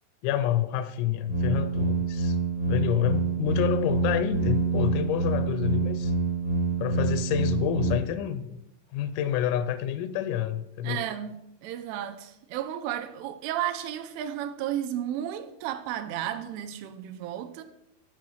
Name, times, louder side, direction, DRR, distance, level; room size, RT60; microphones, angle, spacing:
voice 1, 0.2-2.4 2.7-6.1 6.8-8.6 8.9-11.0, left 10 dB, 85° left, 3.2 m, -28 dB
sound 1, 1.3-7.9, right 4 dB, 40° right, 0.7 m, -27 dB
voice 2, 10.8-17.6, right 11 dB, 85° right, 2.9 m, -33 dB
11.5 x 4.8 x 6.4 m
omnidirectional pair, 5.9 m